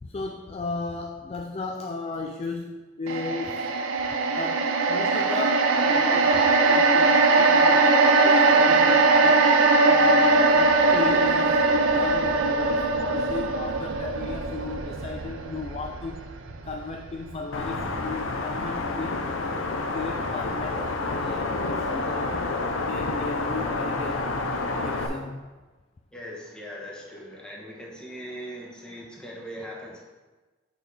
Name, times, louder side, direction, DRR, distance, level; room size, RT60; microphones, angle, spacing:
voice 1, 0.0-3.7 4.4-9.5 9.9-16.2 16.6-19.2 19.8-22.4 22.9-24.3 24.8-25.4, left 3 dB, 30° left, 3 dB, 0.3 m, -34 dB
sound 1, 3.1-17.4 17.8-17.9, right 3 dB, 75° right, 0.6 m, -21 dB
sound 2, 17.5-25.1, left 3 dB, 75° left, 0.6 m, -29 dB
voice 2, 26.1-30.0, equal, 5° left, -3 dB, 1.1 m, -40 dB
6.6 x 6.0 x 3.3 m, 1.2 s
head